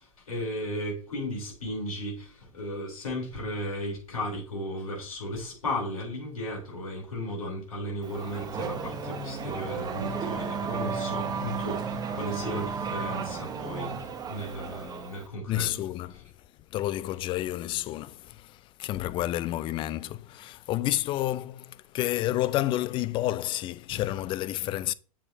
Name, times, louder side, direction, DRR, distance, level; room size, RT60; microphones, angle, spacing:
voice 1, 0.0-15.7, left 1 dB, 75° left, 3.7 m, -35 dB
Race car auto racing / Accelerating revving vroom, 8.0-15.3, right 5 dB, 20° right, 1.4 m, -33 dB
voice 2, 15.5-16.3 16.7-24.9, left 14 dB, 30° left, 0.4 m, -30 dB
8.0 x 7.3 x 2.8 m
figure-of-eight pair, 95°, 18 cm